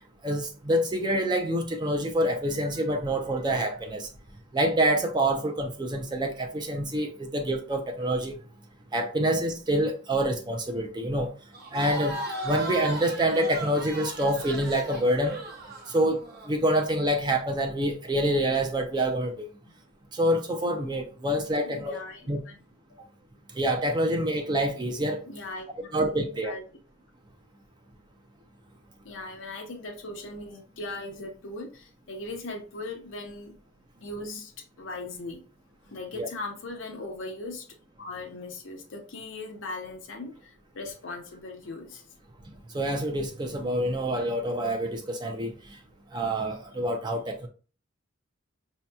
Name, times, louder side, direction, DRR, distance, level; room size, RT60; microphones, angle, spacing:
voice 1, 0.2-4.1 4.5-8.4 8.9-11.3 11.7-12.2 12.4-15.4 15.9-19.5 20.1-22.0 22.3-22.4 23.6-25.2 25.9-26.5 36.2-36.3 42.7-45.5 46.1-47.5, right 1 dB, 20° right, 0.5 m, -26 dB
Crowd, 11.5-16.5, right 2 dB, 50° right, 0.9 m, -37 dB
voice 2, 21.7-22.6 23.0-23.1 25.3-25.9 26.2-26.6 29.0-33.5 34.0-34.5 34.8-35.4 35.8-42.0, left 2 dB, 70° left, 0.7 m, -39 dB
5.0 x 2.8 x 2.2 m
head